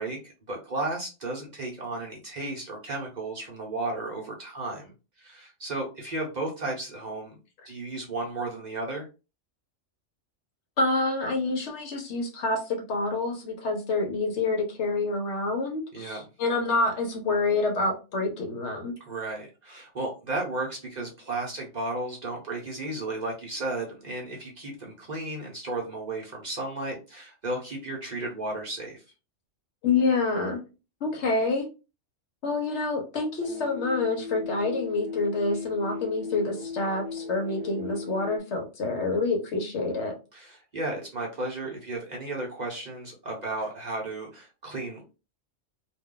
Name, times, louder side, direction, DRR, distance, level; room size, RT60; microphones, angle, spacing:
voice 1, 0.0-4.9 5.2-7.3 7.6-9.1 15.9-16.2 19.0-29.0 40.3-45.2, right 2 dB, 40° right, -1 dB, 0.8 m, -34 dB
voice 2, 10.8-18.9 29.8-30.6 31.0-31.7 32.4-40.1, left 3 dB, 65° left, 3 dB, 0.9 m, -27 dB
sound 1, 33.4-38.4, left 5 dB, 75° right, 1.0 m, -37 dB
2.4 x 2.2 x 3.7 m, 0.31 s
omnidirectional pair, 1.3 m